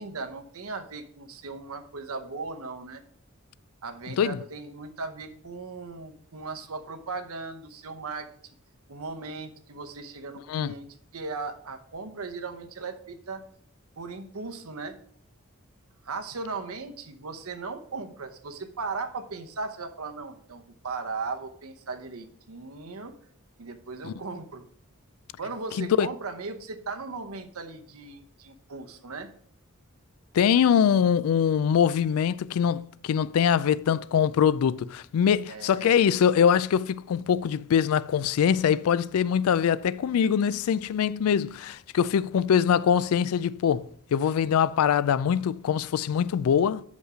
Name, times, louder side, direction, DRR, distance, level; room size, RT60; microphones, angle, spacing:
voice 1, 0.0-3.0 3.8-8.3 8.9-10.9 11.1-13.4 14.0-15.0 16.0-23.2 23.6-24.7 25.4-29.3 35.5-35.9, right 4 dB, 80° right, 0.9 m, -37 dB
voice 2, 25.8-26.1 30.3-46.8, left 8 dB, 80° left, 0.3 m, -23 dB
6.5 x 5.2 x 4.8 m
head